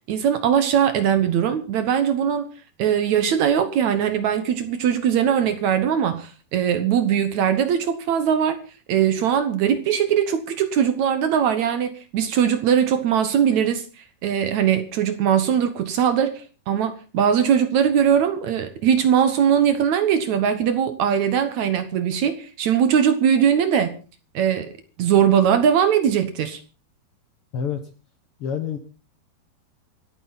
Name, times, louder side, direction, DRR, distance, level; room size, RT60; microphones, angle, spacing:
voice 1, 0.1-2.5 2.8-8.6 8.9-13.9 14.2-24.0 24.3-26.6, right 8 dB, 70° right, 1.8 m, -20 dB
voice 2, 28.4-28.8, left 7 dB, 75° left, 1.3 m, -27 dB
27.0 x 9.1 x 4.0 m
omnidirectional pair, 4.6 m